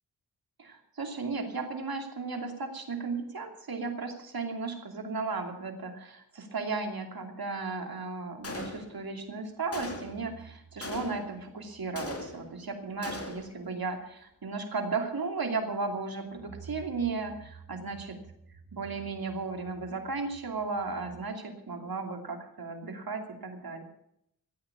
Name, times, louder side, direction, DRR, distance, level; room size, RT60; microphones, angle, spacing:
voice 1, 0.6-18.2 18.7-23.8, right 4 dB, 65° right, 4 dB, 2.8 m, -35 dB
Gunshot gunfire, 8.4-9.2 9.7-10.3 10.8-11.4 12.0-12.6 13.0-13.6, left 2 dB, 35° left, 2.4 m, -40 dB
sound 1, 10.0-12.6 12.9-13.2 13.5-13.6 16.1-21.2, right 6 dB, 85° right, 3.2 m, -52 dB
15.5 x 9.3 x 8.4 m, 0.75 s
wide cardioid pair, 65°, 38 cm